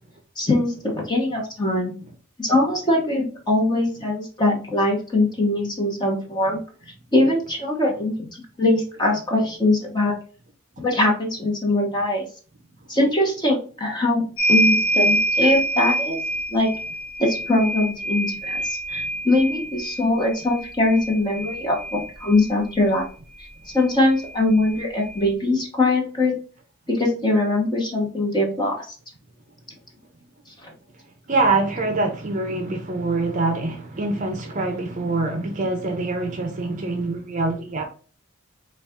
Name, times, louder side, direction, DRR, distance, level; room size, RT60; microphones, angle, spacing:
voice 1, 0.4-1.9 2.4-6.6 7.1-8.3 8.6-10.1 10.8-12.3 12.9-14.2 14.5-16.2 16.5-16.7 17.2-23.1 23.7-26.3 26.9-28.9 30.6-30.7, left 2 dB, 20° left, 0.9 m, -22 dB
sound 1, 14.4-22.5 23.8-23.9 24.1-25.2, right 1 dB, 70° left, 1.1 m, -25 dB
voice 2, 31.3-37.8, right 3 dB, 40° right, 0.6 m, -24 dB
4.0 x 2.3 x 3.5 m
head